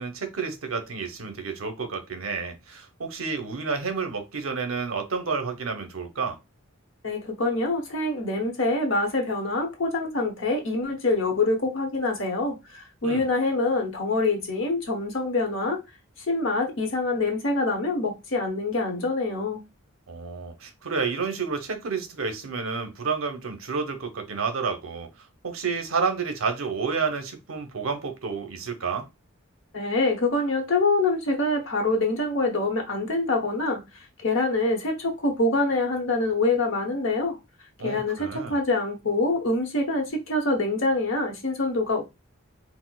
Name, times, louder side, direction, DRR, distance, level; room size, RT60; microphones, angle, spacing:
voice 1, 0.0-6.4 13.0-13.3 20.1-25.1 25.4-29.1 37.8-38.6, right 5 dB, 80° right, 0.7 m, -30 dB
voice 2, 7.0-15.8 16.3-19.6 29.7-33.8 34.2-37.4 37.8-42.0, left 2 dB, 65° left, 0.9 m, -25 dB
4.1 x 2.0 x 2.3 m
head